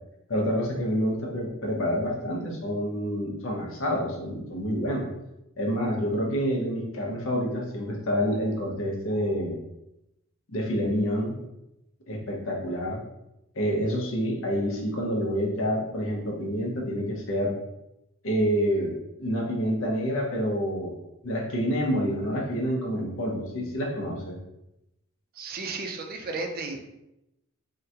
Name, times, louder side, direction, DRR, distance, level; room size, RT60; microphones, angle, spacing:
voice 1, 0.3-5.1 5.6-9.6 10.5-11.4 12.1-13.0 13.5-17.5 18.2-18.9 19.2-21.0 21.2-24.4, equal, 65° left, 0 dB, 0.7 m, -28 dB
voice 2, 25.3-26.8, right 3 dB, 45° right, 3 dB, 0.4 m, -33 dB
3.7 x 2.2 x 2.7 m, 0.88 s
head